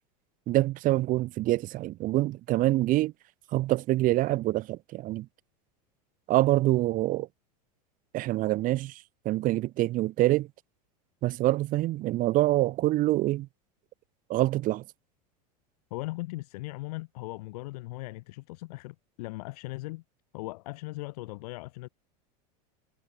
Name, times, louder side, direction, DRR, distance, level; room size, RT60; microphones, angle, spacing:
voice 1, 0.5-3.1 3.5-5.3 6.3-7.3 8.1-10.5 11.2-13.5 14.3-14.8, right 16 dB, 40° right, 1.5 m, -26 dB
voice 2, 15.9-20.0 20.3-21.9, left 21 dB, 70° left, 3.9 m, -38 dB
supercardioid pair, 130°, 21 cm